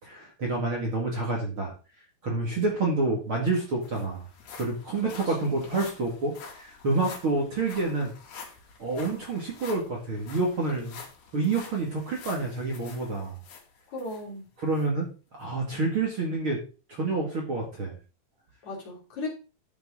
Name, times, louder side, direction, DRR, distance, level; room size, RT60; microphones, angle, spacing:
voice 1, 0.0-1.7 2.2-4.2 4.6-8.1 8.8-11.0 11.3-13.3 14.6-16.6 16.9-18.0, right 3 dB, 40° right, -1 dB, 2.6 m, -28 dB
sound 1, 3.0-3.1 3.4-14.2 14.7-14.9 15.4-15.5, left 5 dB, 85° left, 4.6 m, -47 dB
voice 2, 5.0-5.6 13.9-14.4 18.6-19.3, left 2 dB, 50° left, -2 dB, 4.1 m, -37 dB
12.5 x 6.9 x 3.8 m, 0.34 s
omnidirectional pair, 4.4 m